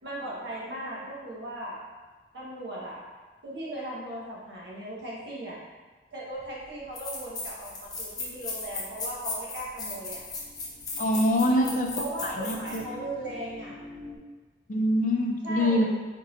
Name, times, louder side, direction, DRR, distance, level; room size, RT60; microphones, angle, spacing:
voice 1, 0.0-1.8 2.3-3.0 3.4-5.6 6.1-10.2 11.4-13.8 15.4-15.9, right 1 dB, 80° right, -5 dB, 1.2 m, -37 dB
sound 1, 6.4-6.5 6.9-12.8, left 3 dB, 20° left, 0.8 m, -36 dB
sound 2, 8.7-14.2, left 2 dB, 15° right, 0.7 m, -48 dB
voice 2, 11.0-11.9 12.2-12.8 14.7-15.9, left 1 dB, 45° left, 1 dB, 0.5 m, -24 dB
4.5 x 3.9 x 2.6 m, 1.3 s
head